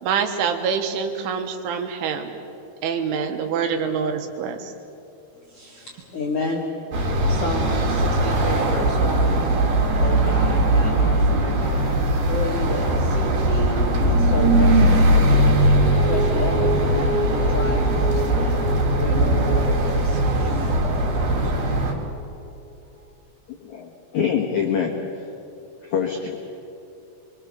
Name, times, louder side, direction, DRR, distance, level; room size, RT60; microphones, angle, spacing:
voice 1, 0.0-2.3 2.8-4.7, right 6 dB, 75° right, 6 dB, 3.7 m, -25 dB
voice 2, 5.4-6.7 7.2-9.4 10.0-15.5 15.8-21.5, left 3 dB, 60° left, -2 dB, 1.5 m, -32 dB
sound 1, 6.9-21.9, right 1 dB, 50° right, 3.3 m, -20 dB
Guitar, 15.3-22.3 22.6-22.7, left 1 dB, 5° right, 3.9 m, -31 dB
voice 3, 23.5-25.3 25.8-26.4, left 7 dB, 80° left, 1 dB, 1.6 m, -25 dB
24.5 x 24.0 x 7.0 m, 2.7 s
omnidirectional pair, 5.7 m